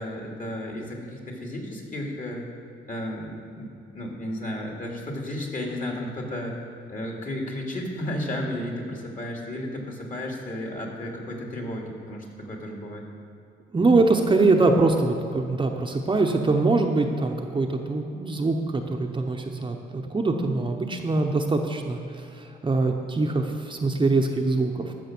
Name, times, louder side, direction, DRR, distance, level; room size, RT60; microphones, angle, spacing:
voice 1, 0.0-2.4 2.9-6.6 6.9-13.0, left 1 dB, 40° left, 0 dB, 2.4 m, -33 dB
voice 2, 13.7-24.9, right 3 dB, 25° right, 3 dB, 0.8 m, -23 dB
13.5 x 6.2 x 6.1 m, 2.5 s
cardioid pair, 90°, 20 cm